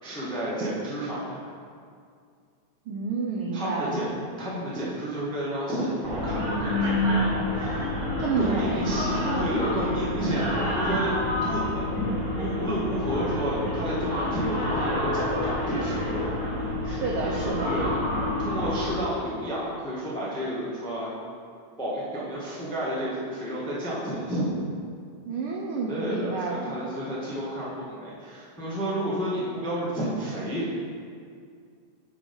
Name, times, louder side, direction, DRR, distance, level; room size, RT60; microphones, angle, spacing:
voice 1, 0.0-1.5 3.5-7.8 8.4-11.9 12.4-16.3 17.7-18.0 18.4-21.1 21.8-24.5 25.9-30.7, right 1 dB, 5° left, -7 dB, 0.5 m, -31 dB
voice 2, 2.9-4.1 8.2-8.9 16.8-17.7 25.3-26.8, right 4 dB, 80° right, -2 dB, 1.2 m, -29 dB
sound 1, 6.0-18.9, left 1 dB, 35° right, 2.1 m, -28 dB
9.4 x 3.9 x 5.3 m, 2.2 s
omnidirectional pair, 3.3 m